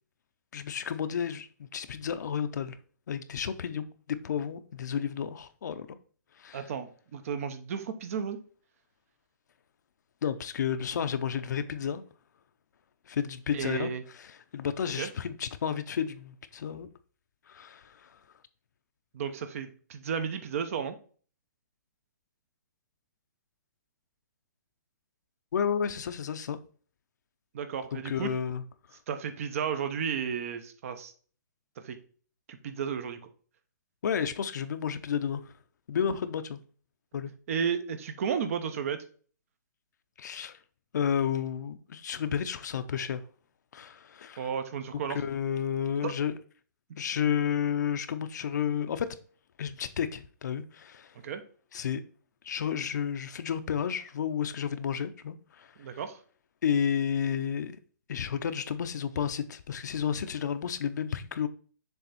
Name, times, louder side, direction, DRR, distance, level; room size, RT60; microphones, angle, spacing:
voice 1, 0.5-2.8 3.1-6.0 6.4-6.7 10.2-12.0 13.1-16.9 17.5-18.2 25.5-26.6 27.9-28.6 34.0-35.5 35.9-36.6 37.1-37.3 40.2-40.6 40.9-43.2 43.7-44.5 45.1-46.3 47.0-49.2 49.6-51.1 51.7-52.0 52.4-56.0 56.6-57.8 58.1-61.5, left 8 dB, 65° left, 0.7 m, -31 dB
voice 2, 6.5-8.4 13.5-14.0 15.0-15.1 19.1-20.9 27.5-28.3 29.1-31.1 31.8-32.0 32.5-33.2 37.5-39.0 44.4-45.2 46.0-46.1 51.2-51.4 55.8-56.2, right 7 dB, 50° right, 0.9 m, -33 dB
7.0 x 3.5 x 4.1 m
hypercardioid pair, 160°, 10 cm